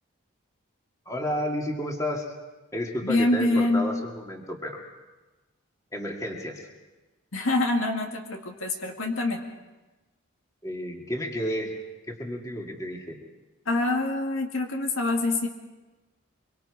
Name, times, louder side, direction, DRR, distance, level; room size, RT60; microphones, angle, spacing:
voice 1, 1.1-2.3 2.7-4.8 5.9-6.7 10.6-11.7 12.1-13.2, equal, 15° left, 1 dB, 2.0 m, -31 dB
voice 2, 3.0-3.9 7.3-9.4 13.7-15.5, left 2 dB, 70° left, 3 dB, 2.1 m, -25 dB
24.5 x 23.5 x 4.8 m, 1.1 s
head